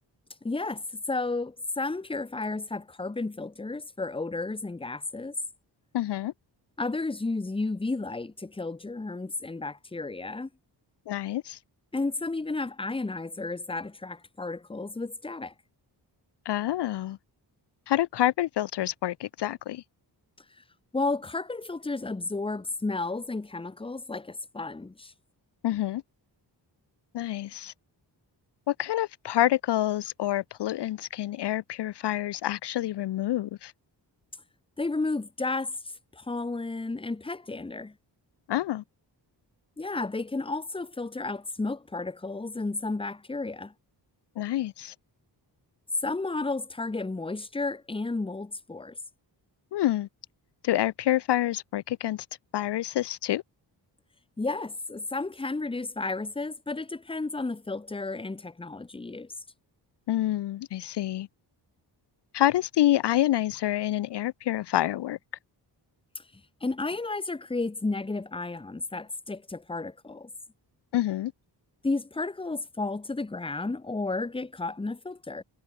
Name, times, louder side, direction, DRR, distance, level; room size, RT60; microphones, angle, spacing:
voice 1, 0.4-5.3 6.8-10.5 11.9-15.5 20.9-25.1 34.8-35.8 36.1-37.9 39.8-43.7 46.0-49.0 54.4-59.3 66.1-66.2 66.6-70.3 71.8-75.4, left 3 dB, 10° left, 1.0 m, -32 dB
voice 2, 5.9-6.3 11.1-11.6 16.5-17.2 17.9-19.8 25.6-26.0 27.1-27.7 28.7-33.7 38.5-38.8 44.4-44.9 49.7-50.1 50.6-52.3 52.5-53.4 60.1-61.3 62.3-65.2 70.9-71.3, left 13 dB, 70° left, 0.6 m, -27 dB
wide cardioid pair, 145°, 43 cm